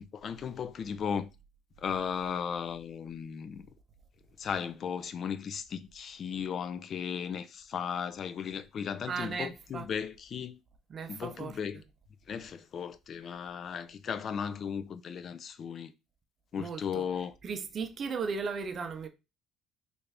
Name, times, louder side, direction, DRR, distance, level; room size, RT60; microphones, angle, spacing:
voice 1, 0.1-1.3 1.8-3.7 4.4-10.6 11.1-11.8 12.3-15.9 16.5-17.3, left 7 dB, 50° left, 0.4 m, -36 dB
voice 2, 9.0-9.9 10.9-11.6 16.6-17.1 17.4-19.1, right 5 dB, 40° right, 0.6 m, -36 dB
3.3 x 2.5 x 3.3 m
supercardioid pair, 90°, 0 cm